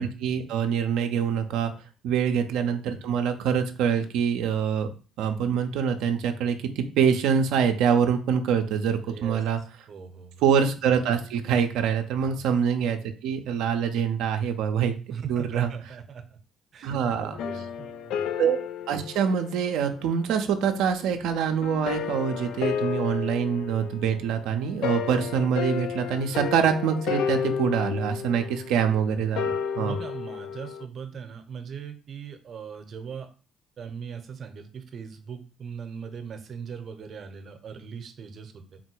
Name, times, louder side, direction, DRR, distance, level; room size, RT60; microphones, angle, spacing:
voice 1, 0.0-1.7 2.0-4.9 5.2-9.6 10.4-14.9 15.3-15.7 16.8-17.4 18.4-18.6 18.9-30.0, right 7 dB, 80° right, 6 dB, 0.5 m, -25 dB
voice 2, 9.1-10.3 12.2-12.5 15.1-16.4 16.7-18.3 29.7-33.3 33.8-38.8, right 6 dB, 55° right, 7 dB, 0.8 m, -40 dB
sound 1, 17.3-20.3 21.6-30.8, left 7 dB, 75° left, 0.3 m, -32 dB
4.0 x 2.2 x 4.5 m, 0.36 s
supercardioid pair, 65°, 0 cm